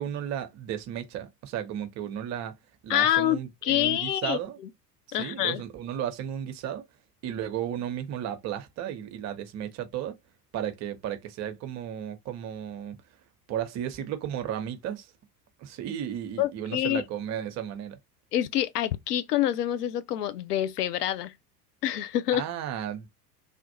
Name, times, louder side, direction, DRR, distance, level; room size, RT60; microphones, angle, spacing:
voice 1, 0.0-2.5 2.8-4.6 5.1-6.8 7.2-10.2 10.5-13.0 13.5-15.1 15.6-18.0 22.3-23.1, right 10 dB, 35° right, 0.7 m, -34 dB
voice 2, 2.9-4.4 5.1-5.6 16.4-17.0 18.3-21.3 21.8-22.4, left 12 dB, 75° left, 0.6 m, -26 dB
3.4 x 2.5 x 2.7 m
figure-of-eight pair, 80°, 48 cm